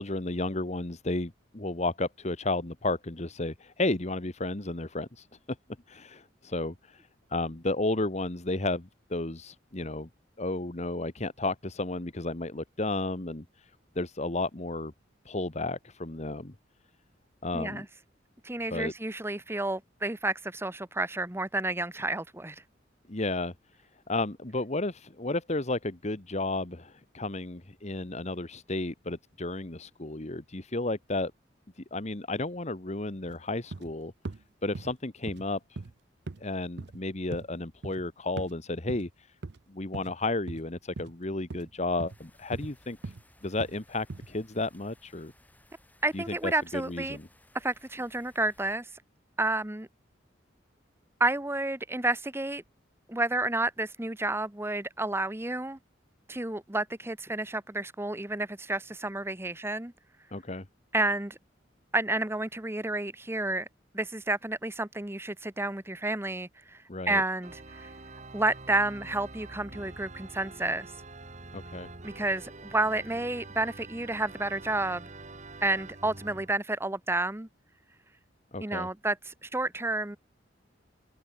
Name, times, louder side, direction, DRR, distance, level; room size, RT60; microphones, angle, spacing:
voice 1, 0.0-5.3 5.9-10.1 10.4-14.9 15.2-16.5 17.4-17.8 18.7-18.9 23.1-23.5 24.1-31.3 31.8-34.1 34.6-35.8 36.4-39.3 39.7-43.1 43.4-45.3 46.1-47.3 60.3-60.7 66.9-67.2 71.5-71.9 78.5-78.9, left 2 dB, 40° left, 1.6 m, -33 dB
voice 2, 17.5-17.9 18.4-22.6 46.0-47.2 47.5-48.9 49.4-49.9 51.2-52.6 53.1-55.8 56.3-59.9 60.9-61.4 61.9-63.7 63.9-66.8 67.1-67.9 68.3-70.9 72.0-75.1 75.6-77.5 78.6-80.2, right 2 dB, 15° right, 1.1 m, -30 dB
sound 1, 33.3-33.4 33.7-33.9 34.2-34.4 34.7-34.9 35.3-35.5 35.8-35.9 36.3-36.4 36.8-37.0 37.3-37.5 37.8-38.0 38.4-38.5 38.9-39.0 39.4-39.6 39.9-40.1 40.5-40.6 41.0-41.1 41.5-41.7 42.0-42.2 42.5-42.7 43.0-43.2 43.6-43.7 44.1-44.3, right 3 dB, 65° right, 0.7 m, -39 dB
sound 2, 42.1-48.8, left 1 dB, 10° left, 7.0 m, -61 dB
Organ, 67.4-76.5, right 3 dB, 40° right, 2.6 m, -46 dB
open air
head